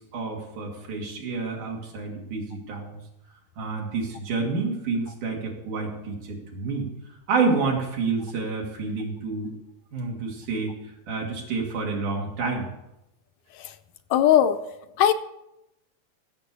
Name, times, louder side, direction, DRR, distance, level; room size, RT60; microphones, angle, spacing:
voice 1, 0.1-3.0 3.6-6.9 7.3-9.5 9.9-10.8 11.1-12.7, right 4 dB, 85° right, -1 dB, 4.1 m, -29 dB
voice 2, 14.1-14.6 15.0-15.1, left 10 dB, 80° left, 9 dB, 1.8 m, -19 dB
15.0 x 7.0 x 6.7 m, 0.89 s
omnidirectional pair, 3.5 m